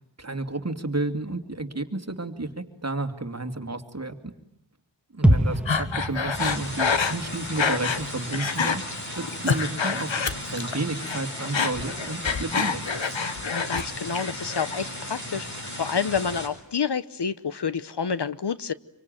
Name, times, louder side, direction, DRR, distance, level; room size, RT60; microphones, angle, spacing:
voice 1, 0.2-4.3 5.1-8.8 9.2-12.8, right 2 dB, 35° right, 7 dB, 2.6 m, -31 dB
sound 1, 5.2-9.2 9.5-9.6, equal, ahead, 1.7 m, -27 dB
Breathing, 5.7-8.0 8.3-8.8 9.2-10.8 11.0-13.9 14.1-14.8, left 5 dB, 90° left, 1.6 m, -27 dB
sound 2, 6.3-16.5, left 1 dB, 40° left, 7.4 m, -36 dB
voice 2, 13.4-18.7, left 6 dB, 65° left, 15 dB, 1.0 m, -29 dB
26.5 x 24.5 x 9.2 m, 0.79 s
wide cardioid pair, 75°, 44 cm